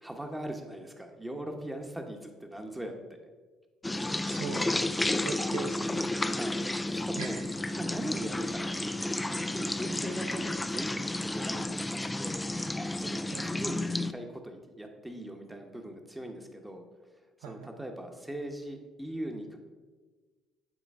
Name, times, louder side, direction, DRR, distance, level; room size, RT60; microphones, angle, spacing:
voice 1, 0.0-2.9 6.2-12.4 12.9-16.8 17.4-19.6, right 1 dB, 10° right, 4 dB, 1.0 m, -40 dB
sound 1, 3.8-14.1, left 2 dB, 15° left, 0.3 m, -32 dB
voice 2, 4.2-6.1 7.2-7.4 13.3-13.6 17.4-17.7, right 6 dB, 75° right, 6 dB, 0.6 m, -40 dB
8.7 x 3.8 x 3.5 m, 1.4 s
hypercardioid pair, 55°, 0 cm